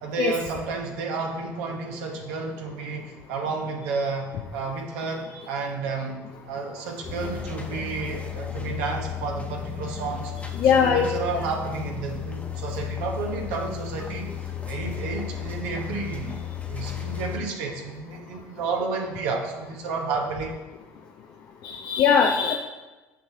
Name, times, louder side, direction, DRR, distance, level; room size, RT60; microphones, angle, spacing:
voice 1, 0.0-10.3 10.6-16.4 16.7-20.6, right 4 dB, 75° right, 1 dB, 1.0 m, -31 dB
sound 1, 7.0-17.4, left 8 dB, 15° left, 0.9 m, -34 dB
voice 2, 10.6-11.0 21.6-22.5, left 7 dB, 55° left, 2 dB, 0.5 m, -20 dB
6.6 x 5.8 x 2.8 m, 1.2 s
hypercardioid pair, 70°, 8 cm